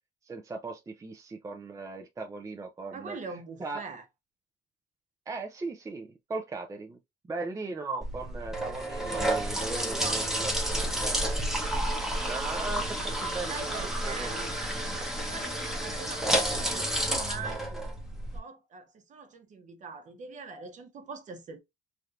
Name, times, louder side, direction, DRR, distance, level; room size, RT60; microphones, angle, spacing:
voice 1, 0.3-3.2 3.6-3.8 5.3-7.0 7.3-11.2 12.2-14.5 16.1-16.3, right 3 dB, 20° right, 0.5 m, -38 dB
voice 2, 2.9-4.1 9.6-10.9 13.5-14.4 15.0-17.8 18.3-21.6, right 4 dB, 45° right, 0.9 m, -42 dB
sound 1, 8.0-18.4, right 1 dB, ahead, 0.9 m, -30 dB
3.3 x 2.7 x 2.4 m
cardioid pair, 110°, 17 cm